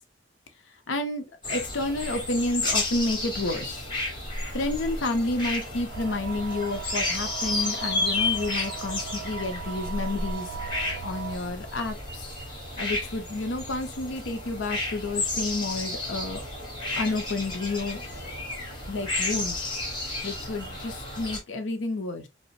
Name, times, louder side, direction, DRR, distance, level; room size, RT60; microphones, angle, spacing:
voice 1, 0.9-3.8 4.5-12.3 12.8-16.4 16.9-18.3 18.9-19.7 20.2-22.3, left 2 dB, 90° left, 0.6 m, -30 dB
sound 1, 1.4-21.4, left 2 dB, 25° left, 1.0 m, -32 dB
sound 2, 5.9-11.4, right 6 dB, 90° right, 0.5 m, -38 dB
sound 3, 7.1-11.9, right 3 dB, 40° right, 0.6 m, -47 dB
2.9 x 2.1 x 2.6 m
head